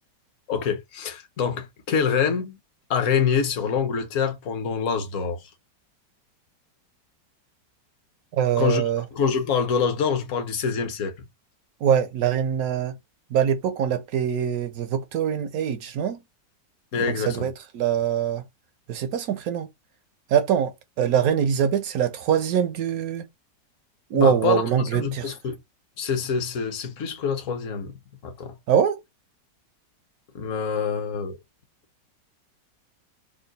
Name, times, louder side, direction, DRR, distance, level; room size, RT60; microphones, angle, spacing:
voice 1, 0.5-2.6 2.9-5.4 8.6-8.8 9.1-11.1 16.9-17.4 24.1-25.6 26.0-27.9 28.2-28.6 30.3-31.4, left 6 dB, 55° left, 1.0 m, -25 dB
voice 2, 8.4-9.0 11.8-12.9 13.3-16.2 17.3-18.4 18.9-19.7 20.3-20.7 21.0-23.2 24.1-25.3 28.7-29.0, right 8 dB, 70° right, 0.9 m, -23 dB
3.7 x 2.3 x 3.9 m
omnidirectional pair, 1.9 m